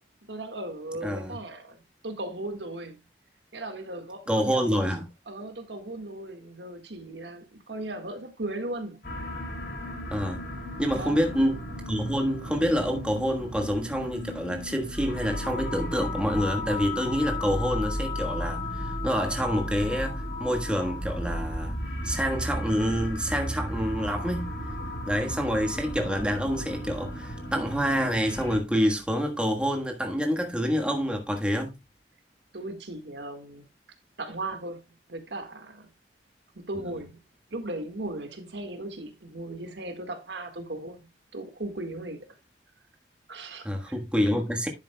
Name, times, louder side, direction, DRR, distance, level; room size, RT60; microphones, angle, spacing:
voice 1, 0.3-3.0 3.5-4.9 5.3-9.0 10.9-11.4 32.5-33.6 34.2-34.8 35.1-35.9 36.5-37.2 37.5-42.3 43.3-44.0, right 2 dB, 75° right, 1.7 m, -37 dB
voice 2, 1.0-1.4 4.3-5.0 10.1-10.4 10.8-11.6 11.9-21.8 22.0-24.5 25.1-31.8 43.6-44.7, equal, 5° right, 1.4 m, -27 dB
sound 1, 9.0-28.6, left 1 dB, 60° left, 3.6 m, -34 dB
10.5 x 8.4 x 2.2 m
head